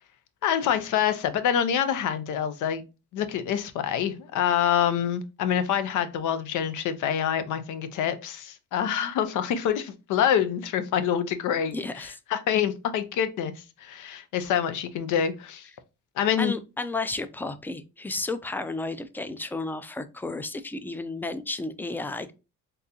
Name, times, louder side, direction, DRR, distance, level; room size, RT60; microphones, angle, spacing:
voice 1, 0.4-2.8 3.1-15.7 16.2-16.5, left 9 dB, 85° left, 0.6 m, -26 dB
voice 2, 11.7-12.2 16.4-22.3, left 2 dB, 5° left, 0.3 m, -32 dB
3.7 x 2.7 x 2.6 m
cardioid pair, 90°, 30 cm